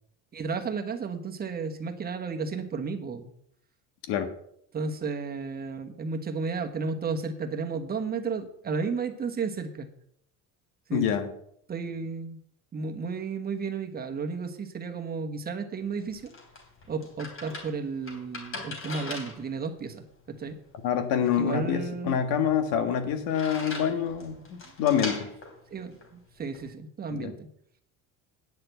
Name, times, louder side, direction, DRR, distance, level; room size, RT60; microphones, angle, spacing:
voice 1, 0.3-3.3 4.7-9.9 10.9-11.1 11.7-12.4 12.7-16.3 16.9-20.5 21.4-22.2 25.7-27.5, right 4 dB, 25° right, 5 dB, 1.2 m, -33 dB
voice 2, 10.9-11.3 20.8-25.3 27.1-27.3, left 8 dB, 85° left, 8 dB, 1.7 m, -26 dB
sound 1, 15.8-26.7, left 3 dB, 35° left, 3.7 m, -42 dB
9.5 x 6.7 x 8.0 m, 0.70 s
cardioid pair, 140°, 35 cm